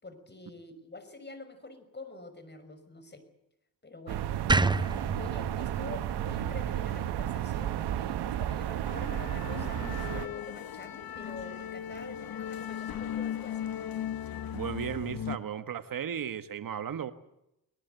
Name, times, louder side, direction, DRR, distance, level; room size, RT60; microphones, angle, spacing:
voice 1, 0.0-3.2 3.8-4.3 5.2-13.6, left 2 dB, 25° left, 10 dB, 5.8 m, -46 dB
sound 1, 4.1-10.3, right 11 dB, 80° right, 1.3 m, -33 dB
sound 2, 4.5-7.7, right 3 dB, 10° right, 0.8 m, -30 dB
sound 3, 8.8-15.4, left 9 dB, 60° left, 1.5 m, -37 dB
voice 2, 14.5-17.1, right 8 dB, 55° right, 10 dB, 1.6 m, -35 dB
21.0 x 20.0 x 8.2 m, 0.84 s
cardioid pair, 65°, 39 cm